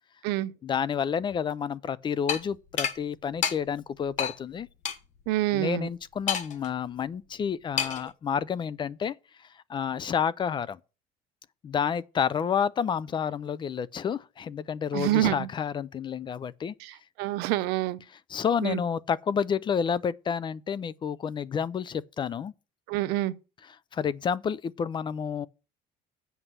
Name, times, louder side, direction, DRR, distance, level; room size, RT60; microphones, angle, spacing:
voice 1, 0.6-4.7 5.5-9.1 9.7-10.8 11.6-16.7 18.3-22.5 23.9-25.5, left 7 dB, 30° left, 0.4 m, -29 dB
sound 1, 2.3-2.4 2.8-3.0 3.4-3.6 4.2-4.3 4.8-5.0 6.3-6.7 7.8-8.1, left 8 dB, 50° left, 1.2 m, -28 dB
voice 2, 5.3-5.9 14.9-15.5 16.8-18.0 18.6-18.8 22.9-23.3, right 16 dB, 85° right, 0.8 m, -27 dB
8.0 x 5.5 x 7.6 m
cardioid pair, 130°, 16 cm